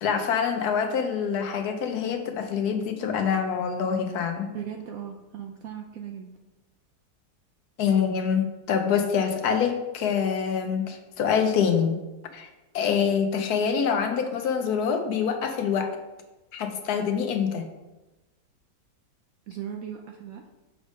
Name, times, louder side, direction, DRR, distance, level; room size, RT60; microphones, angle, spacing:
voice 1, 0.0-4.5 7.8-12.0 12.3-12.5 12.7-16.0 16.5-17.6, left 7 dB, 70° left, 5 dB, 1.1 m, -25 dB
voice 2, 4.5-6.3 19.5-20.4, right 9 dB, 70° right, 3 dB, 0.8 m, -37 dB
6.3 x 3.4 x 5.0 m, 1.1 s
omnidirectional pair, 1.9 m